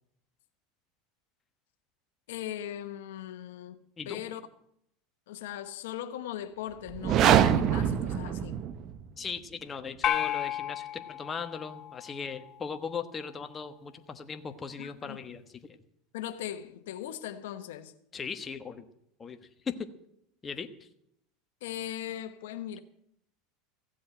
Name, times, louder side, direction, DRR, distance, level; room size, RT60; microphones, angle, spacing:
voice 1, 2.3-4.4 5.3-8.6 14.8-15.2 16.1-17.9 21.6-22.8, left 11 dB, 85° left, 1.0 m, -39 dB
sound 1, 6.9-9.0, right 9 dB, 45° right, 0.9 m, -24 dB
voice 2, 9.2-15.4 18.1-18.9 19.2-19.4 19.6-19.9 20.4-20.7, left 5 dB, 25° left, 1.2 m, -38 dB
sound 2, 10.0-12.5, left 11 dB, 40° left, 1.0 m, -33 dB
15.5 x 7.8 x 8.7 m
supercardioid pair, 120°, 0 cm